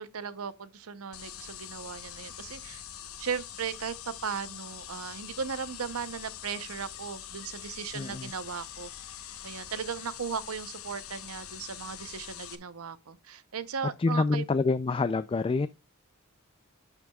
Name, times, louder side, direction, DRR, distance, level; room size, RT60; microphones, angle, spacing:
voice 1, 0.0-2.8 3.2-8.9 9.4-14.4, right 6 dB, 85° right, 0.7 m, -37 dB
sound 1, 1.1-12.6, left 10 dB, 75° left, 1.0 m, -44 dB
voice 2, 7.9-8.3 14.0-15.7, left 3 dB, 25° left, 0.3 m, -27 dB
12.0 x 6.0 x 2.3 m
head